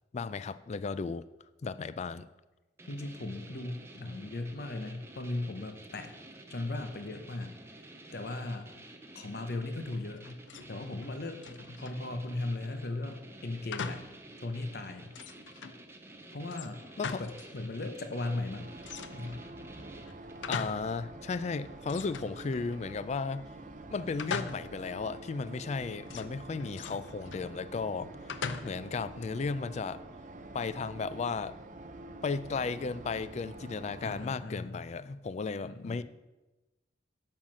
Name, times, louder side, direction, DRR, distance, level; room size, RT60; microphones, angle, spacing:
voice 1, 0.1-1.2 1.6-2.3 17.0-17.2 20.5-23.5 23.9-28.1 28.6-30.0 30.5-31.6 32.2-36.0, left 4 dB, 40° left, 0.3 m, -35 dB
sound 1, 2.8-20.5, right 1 dB, 15° right, 0.8 m, -51 dB
voice 2, 2.9-6.1 6.5-7.5 7.8-8.7 9.1-10.3 10.7-11.4 11.8-14.0 14.4-15.1 16.3-16.8 17.2-18.7 19.1-19.4 34.0-34.8 35.6-36.0, left 2 dB, 60° left, 0.8 m, -37 dB
sound 2, 10.2-10.7 11.0-12.1 13.7-14.2 14.6-14.7 15.1-15.8 16.5-17.6 17.8-17.9 18.8-19.5 20.0-21.0 21.3-21.4 21.9-22.9 24.2-24.9 26.1-27.5 28.3-29.0, left 5 dB, 90° left, 0.5 m, -40 dB
sound 3, 18.5-34.3, right 2 dB, 45° right, 0.7 m, -47 dB
8.8 x 5.7 x 6.3 m
head